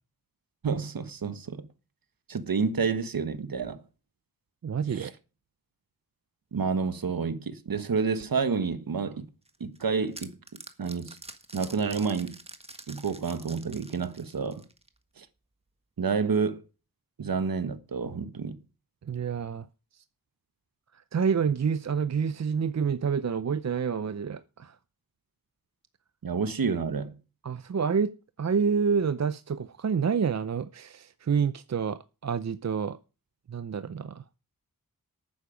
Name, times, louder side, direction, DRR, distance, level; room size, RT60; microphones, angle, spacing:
voice 1, 0.6-1.7 2.3-3.8 4.9-5.1 6.5-9.3 9.6-10.3 10.8-11.2 11.5-12.4 12.9-14.6 15.2-15.3 16.0-16.6 17.2-18.6 26.2-27.1, right 5 dB, 70° right, 1.3 m, -29 dB
voice 2, 4.6-5.1 19.1-19.7 21.1-24.8 27.4-28.1 28.4-33.0 33.5-34.2, right 6 dB, 50° right, 0.6 m, -28 dB
sound 1, 9.5-15.0, right 2 dB, 15° right, 1.5 m, -47 dB
11.5 x 9.5 x 5.1 m
wide cardioid pair, 70°, 36 cm